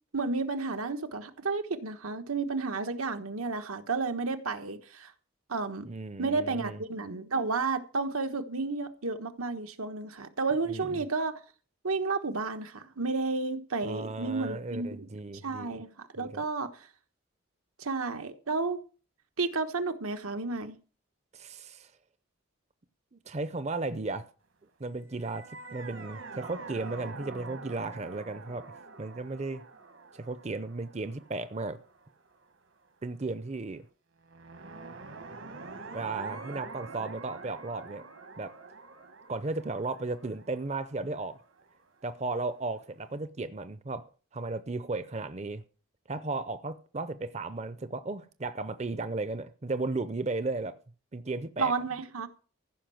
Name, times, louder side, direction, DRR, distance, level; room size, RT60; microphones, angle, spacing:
voice 1, 0.1-5.1 5.5-5.9 6.2-11.4 11.8-15.1 15.4-16.9 17.8-18.8 19.4-20.8 51.6-52.3, right 4 dB, 90° right, 1.3 m, -32 dB
voice 2, 5.8-6.8 10.7-11.0 13.8-15.8 16.2-16.4 21.3-21.9 23.1-24.3 24.8-28.6 29.0-29.6 30.1-31.8 33.0-33.8 35.9-38.0 38.4-38.5 39.3-41.4 42.0-44.1 44.3-45.6 46.1-50.7 51.1-51.7, right 3 dB, 30° right, 0.6 m, -35 dB
sound 1, 25.1-32.4 34.2-42.0, right 3 dB, 65° right, 1.3 m, -46 dB
15.0 x 5.6 x 7.7 m
head